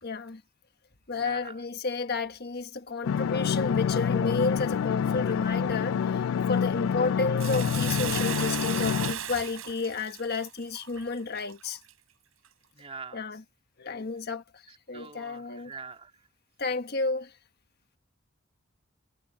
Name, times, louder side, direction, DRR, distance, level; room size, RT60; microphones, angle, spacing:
voice 1, 0.0-0.4 1.1-11.8 13.1-13.4 13.8-14.6 14.9-15.7 16.6-17.3, left 3 dB, 50° left, 1.4 m, -32 dB
voice 2, 1.2-1.5 12.7-13.2 14.7-16.1, right 4 dB, 30° right, 2.8 m, -43 dB
sound 1, 3.0-9.1, left 7 dB, 75° left, 0.3 m, -27 dB
Bathtub (filling or washing), 7.4-11.9 12.4-12.5, right 9 dB, 85° right, 5.8 m, -36 dB
head